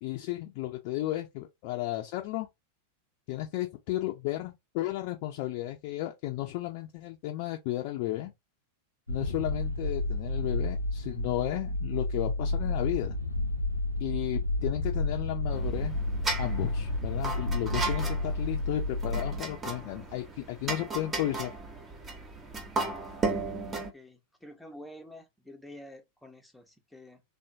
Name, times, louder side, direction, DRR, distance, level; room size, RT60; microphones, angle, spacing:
voice 1, 0.0-2.5 3.3-8.3 9.1-13.2 14.0-16.0 16.4-21.5, left 15 dB, 45° left, 0.6 m, -33 dB
sound 1, 9.1-19.4, left 2 dB, 90° left, 0.5 m, -31 dB
sound 2, 15.5-23.9, right 3 dB, 20° right, 1.1 m, -35 dB
voice 2, 23.7-27.2, left 1 dB, 5° left, 0.9 m, -49 dB
3.5 x 2.7 x 2.7 m
figure-of-eight pair, 90°, 0 cm